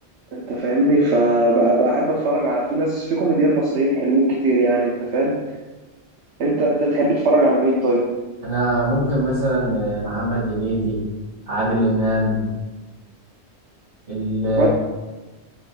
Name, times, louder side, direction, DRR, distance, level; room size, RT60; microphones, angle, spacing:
voice 1, 0.3-5.4 6.4-8.0 14.5-14.7, right 1 dB, 80° right, -1 dB, 1.1 m, -19 dB
voice 2, 8.4-11.0 11.5-12.5 14.1-14.7, right 1 dB, 55° right, -10 dB, 2.3 m, -22 dB
7.6 x 5.7 x 2.4 m, 1.2 s
omnidirectional pair, 1.1 m